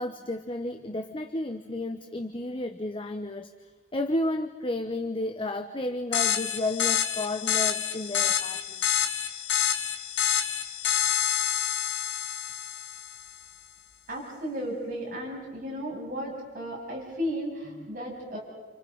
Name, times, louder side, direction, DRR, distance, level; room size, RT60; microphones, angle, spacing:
voice 1, 0.0-3.5 3.9-8.9, left 2 dB, 30° left, 6 dB, 1.1 m, -32 dB
sound 1, 6.1-13.3, left 9 dB, 80° left, 1.6 m, -28 dB
voice 2, 14.1-18.4, equal, 50° right, -2 dB, 7.6 m, -34 dB
30.0 x 29.0 x 5.5 m, 1.3 s
head